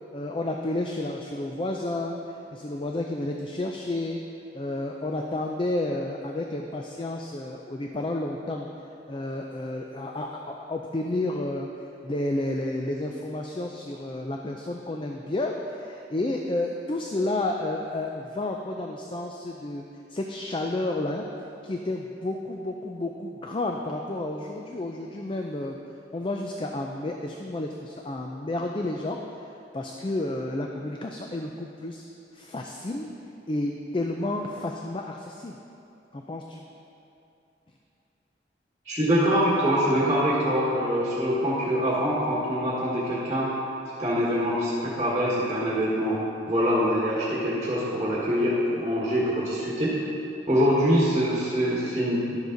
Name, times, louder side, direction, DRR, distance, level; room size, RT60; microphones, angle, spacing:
voice 1, 0.1-4.2 4.5-8.7 9.1-11.7 12.0-21.2 21.6-25.8 26.1-32.0 32.3-33.1 33.5-35.6 36.1-36.6, left 2 dB, 30° left, 2 dB, 0.4 m, -31 dB
voice 2, 38.8-43.5 44.0-46.2 46.5-49.9 50.5-52.4, equal, 20° right, -8 dB, 1.5 m, -24 dB
11.5 x 7.2 x 3.9 m, 2.7 s
head